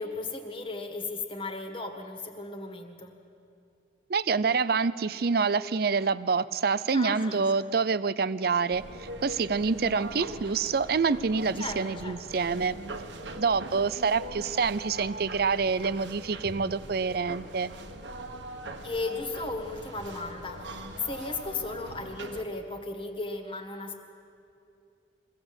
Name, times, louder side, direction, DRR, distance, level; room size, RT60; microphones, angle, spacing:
voice 1, 0.0-3.1 6.9-7.5 11.6-12.2 18.8-24.0, left 3 dB, 30° left, 4 dB, 1.8 m, -36 dB
voice 2, 4.1-12.8 13.4-17.7, right 5 dB, 55° right, 16 dB, 0.5 m, -27 dB
sound 1, 8.7-22.4, right 1 dB, 80° right, 1.4 m, -41 dB
22.5 x 16.5 x 8.0 m, 2.6 s
head